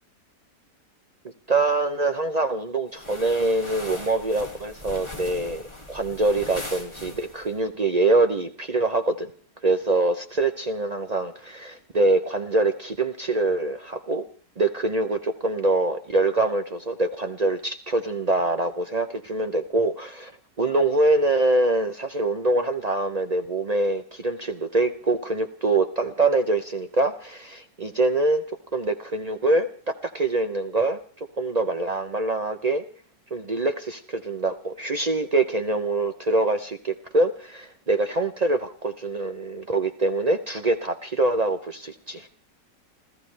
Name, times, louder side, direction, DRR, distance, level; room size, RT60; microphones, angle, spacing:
voice 1, 1.5-5.6 5.9-9.3 9.6-14.3 14.6-20.3 20.6-28.4 28.7-31.0 31.4-32.8 33.3-42.3, right 2 dB, 55° right, 7 dB, 0.4 m, -24 dB
sound 1, 2.9-7.6, left 2 dB, 15° left, 2.1 m, -40 dB
28.0 x 14.5 x 3.3 m, 0.43 s
omnidirectional pair, 1.9 m